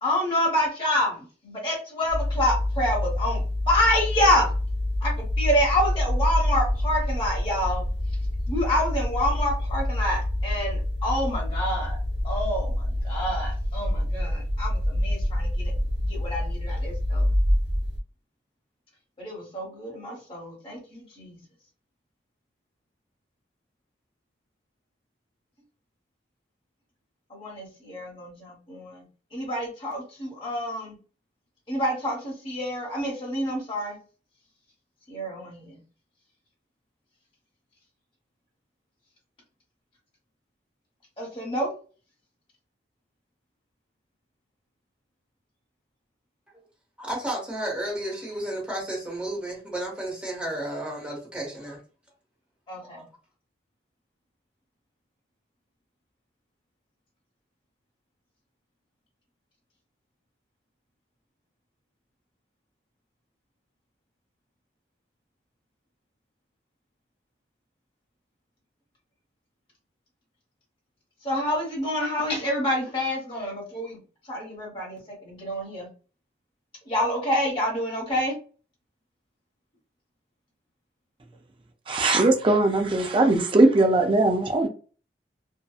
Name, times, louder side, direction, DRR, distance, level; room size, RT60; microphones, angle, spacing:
voice 1, 0.0-4.5 5.0-7.8 8.5-12.0 12.2-15.7 16.0-17.3 19.2-21.4 27.3-29.0 29.3-30.9 31.7-34.0 35.1-35.8 41.2-41.7 52.7-53.1 71.2-74.0 74.3-75.9 76.9-78.3, left 1 dB, 30° left, 1.2 m, -27 dB
sound 1, 2.1-18.0, left 1 dB, 85° right, 0.7 m, -26 dB
voice 2, 47.0-51.8 53.0-53.1, right 1 dB, 5° right, 0.9 m, -32 dB
voice 3, 81.9-84.7, right 2 dB, 30° right, 0.4 m, -20 dB
2.7 x 2.2 x 2.3 m
head